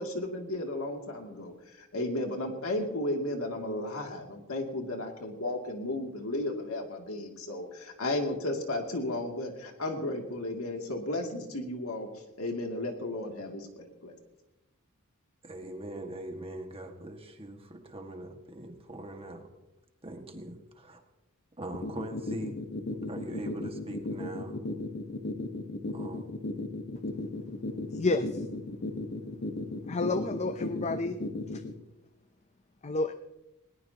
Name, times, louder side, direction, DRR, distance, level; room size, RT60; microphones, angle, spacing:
voice 1, 0.0-12.1 12.4-14.1, left 1 dB, 70° left, 2 dB, 2.5 m, -34 dB
voice 2, 15.4-19.5 20.0-21.0 21.6-22.6 22.9-24.6 25.9-26.4, right 1 dB, 25° right, 4 dB, 1.7 m, -42 dB
sound 1, 21.7-31.7, left 2 dB, 50° left, 1.2 m, -35 dB
voice 3, 27.9-28.3 29.9-31.2 32.8-33.1, left 2 dB, 30° left, 10 dB, 0.6 m, -29 dB
20.0 x 19.0 x 2.9 m, 0.97 s
head